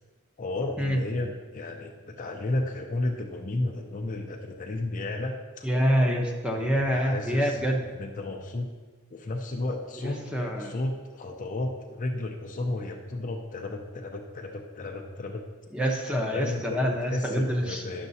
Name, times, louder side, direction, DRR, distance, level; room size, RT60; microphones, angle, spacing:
voice 1, 0.4-5.7 6.0-6.1 6.6-8.7 9.1-15.4 16.3-18.1, left 2 dB, 35° left, 3 dB, 0.5 m, -33 dB
voice 2, 5.6-7.8 10.0-10.7 15.7-17.8, equal, 5° right, 0 dB, 0.7 m, -26 dB
10.5 x 6.6 x 2.7 m, 1.4 s
head